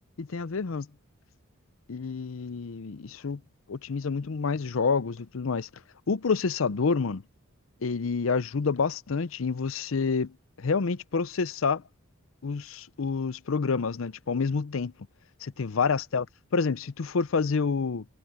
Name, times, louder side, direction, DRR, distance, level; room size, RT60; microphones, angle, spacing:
voice 1, 0.2-0.9 1.9-3.4 3.7-5.7 6.1-7.2 7.8-11.8 12.4-14.9 15.4-16.3 16.5-18.0, left 5 dB, 75° left, 0.6 m, -28 dB
head